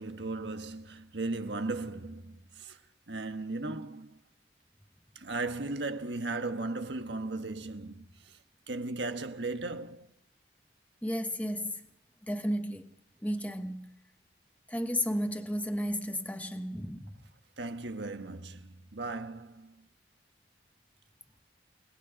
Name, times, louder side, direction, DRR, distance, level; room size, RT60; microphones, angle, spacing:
voice 1, 0.0-2.8 3.1-4.2 5.1-8.4 8.7-10.1 17.6-19.9, right 2 dB, 85° right, 1.5 m, -37 dB
voice 2, 11.0-11.8 12.3-12.9 13.2-13.9 14.7-17.1, equal, 10° left, 1.2 m, -33 dB
28.5 x 19.0 x 5.2 m
head